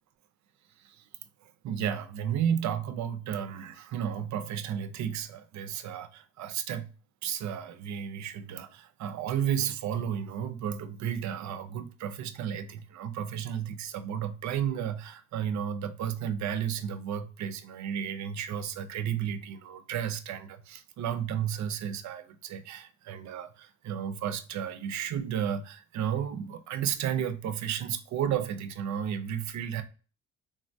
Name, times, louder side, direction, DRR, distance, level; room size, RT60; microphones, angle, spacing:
voice 1, 1.6-6.9 7.2-29.8, right 9 dB, 70° right, 0.5 m, -33 dB
3.6 x 2.2 x 2.5 m
cardioid pair, 90°, 30 cm